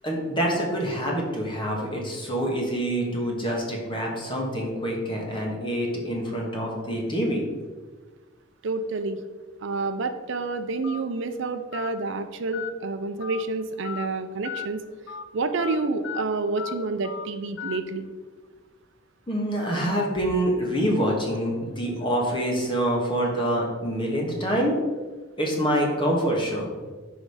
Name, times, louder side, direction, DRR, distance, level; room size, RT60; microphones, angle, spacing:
voice 1, 0.0-7.4 19.3-24.8 25.4-26.7, equal, 25° left, -1 dB, 1.5 m, -26 dB
voice 2, 8.6-9.2 9.6-14.8 15.3-18.1, right 3 dB, 65° right, 9 dB, 0.5 m, -28 dB
Telephone, 10.8-11.0 11.7-11.9 12.5-12.7 13.2-13.4 13.8-14.1 14.4-14.7 15.1-15.2 15.6-15.8 16.0-16.2 16.6-16.7 17.0-17.3 17.6-17.8, left 9 dB, 70° left, 0.5 m, -35 dB
6.2 x 5.0 x 4.9 m, 1.4 s
head